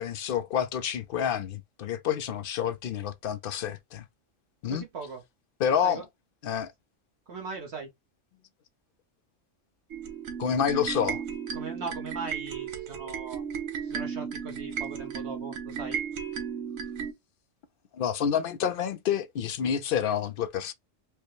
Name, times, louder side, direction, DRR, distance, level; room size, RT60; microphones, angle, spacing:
voice 1, 0.0-4.0 4.6-4.8 5.6-6.1 6.4-6.7 10.4-11.2 17.9-20.7, left 8 dB, 60° left, 0.6 m, -28 dB
voice 2, 4.7-5.2 5.8-6.0 7.3-7.9 11.5-13.4 13.8-16.0, right 4 dB, 60° right, 1.1 m, -39 dB
sound 1, 9.9-17.1, right 7 dB, 80° right, 1.2 m, -35 dB
4.7 x 2.1 x 3.0 m
omnidirectional pair, 1.3 m